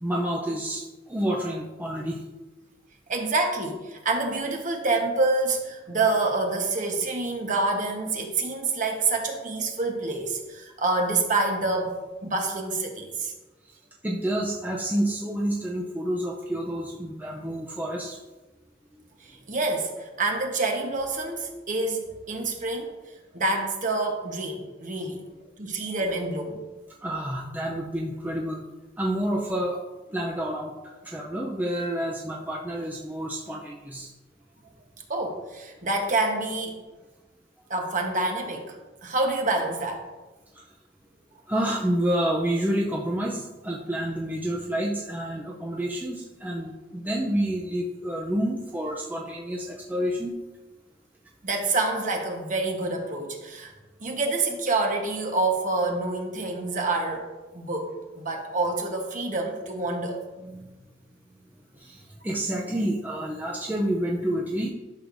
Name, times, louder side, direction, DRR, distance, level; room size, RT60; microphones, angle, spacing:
voice 1, 0.0-2.2 14.0-18.2 27.0-28.6 29.0-29.8 30.1-34.1 41.5-50.3 60.4-60.7 61.8-64.7, right 1 dB, 10° right, -2 dB, 0.5 m, -29 dB
voice 2, 3.1-11.9 12.2-13.3 19.2-22.9 23.3-25.2 25.6-26.6 35.1-36.7 37.7-38.8 39.0-40.1 51.4-53.7 54.0-60.2, right 3 dB, 40° right, 2 dB, 1.1 m, -27 dB
11.0 x 6.4 x 2.6 m, 1.2 s
head